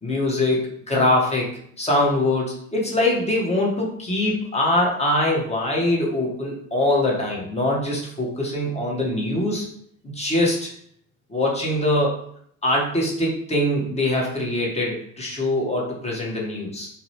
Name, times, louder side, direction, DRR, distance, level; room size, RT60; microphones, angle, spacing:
voice 1, 0.0-9.7 10.1-10.7 11.3-12.1 12.6-16.9, left 1 dB, 15° left, -2 dB, 0.8 m, -23 dB
2.5 x 2.1 x 2.9 m, 0.66 s
hypercardioid pair, 60°, 43 cm